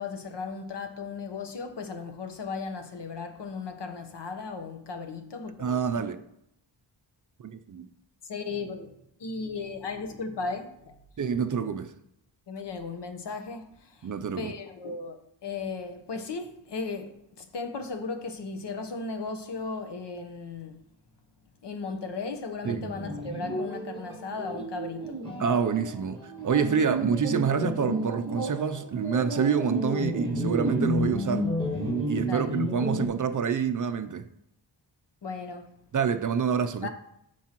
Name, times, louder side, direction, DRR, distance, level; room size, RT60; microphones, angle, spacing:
voice 1, 0.0-6.1 8.2-10.9 12.5-14.1 14.4-15.2 15.4-20.7 21.6-25.2 32.2-32.5 35.2-35.7 36.8-36.9, left 4 dB, 65° left, 1.1 m, -36 dB
voice 2, 5.6-6.2 7.4-7.9 11.2-11.9 14.0-14.5 22.6-22.8 25.4-31.5 32.0-34.3 35.9-36.9, right 7 dB, 45° right, 0.5 m, -27 dB
sound 1, 22.6-33.1, equal, 10° left, 1.8 m, -31 dB
13.0 x 4.6 x 3.0 m
wide cardioid pair, 135°, 46 cm